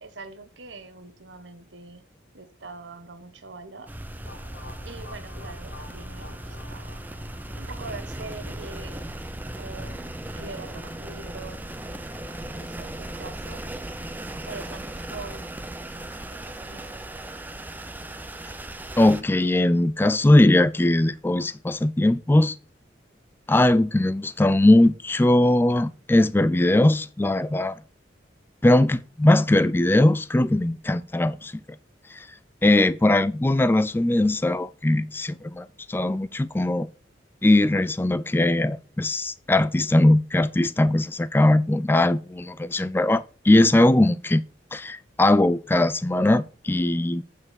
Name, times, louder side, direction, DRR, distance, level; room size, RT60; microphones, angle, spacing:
voice 1, 0.0-2.0 2.3-3.9 4.8-6.9 7.5-9.2 9.6-11.6 12.5-13.7 14.4-15.4 16.3-17.0, right 3 dB, 90° right, 1.3 m, -43 dB
sound 1, 3.9-19.2, right 1 dB, 10° right, 0.7 m, -37 dB
sound 2, 4.2-9.0, left 3 dB, 70° left, 1.8 m, -49 dB
voice 2, 19.0-22.6 23.5-27.7 28.6-31.5 32.1-32.3 32.6-36.9 37.4-44.4 44.7-47.2, left 1 dB, 10° left, 0.3 m, -20 dB
8.6 x 4.6 x 6.4 m
head